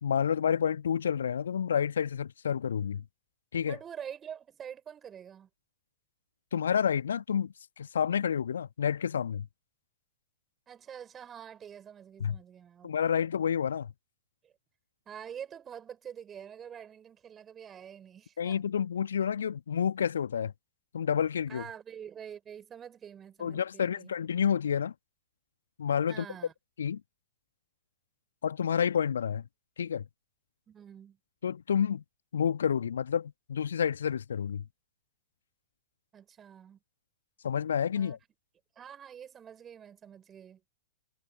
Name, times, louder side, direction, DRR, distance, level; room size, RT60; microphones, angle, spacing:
voice 1, 0.0-3.0 3.5-3.8 6.5-9.5 12.2-12.4 12.8-13.9 18.4-20.5 20.9-21.6 23.4-24.9 25.8-26.2 26.8-27.0 28.4-29.4 29.8-30.0 31.4-32.0 32.3-34.6 37.4-38.2, left 8 dB, 65° left, 1.5 m, -29 dB
voice 2, 3.7-5.5 10.7-12.9 14.4-14.5 15.1-18.6 21.5-24.1 26.1-26.5 30.7-31.2 36.1-36.8 37.9-38.2 38.8-40.6, right 8 dB, 20° right, 4.2 m, -46 dB
figure-of-eight pair, 100°, 0 cm